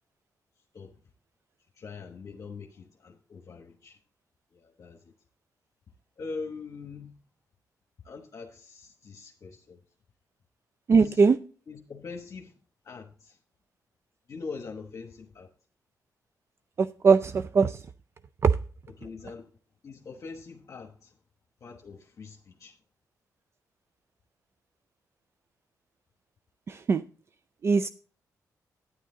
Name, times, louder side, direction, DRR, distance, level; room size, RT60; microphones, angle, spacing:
voice 1, 1.8-4.0 4.5-5.1 6.2-7.2 8.0-9.8 10.9-11.2 11.7-12.6 12.8-13.4 14.3-15.5 19.0-19.5 19.8-21.2 21.6-22.8, left 4 dB, 55° left, 1.1 m, -43 dB
voice 2, 10.9-11.4 16.8-17.8 18.4-18.6 26.7-27.0 27.6-27.9, right 5 dB, 40° right, 0.4 m, -21 dB
9.9 x 9.2 x 3.8 m
cardioid pair, 90°, 6 cm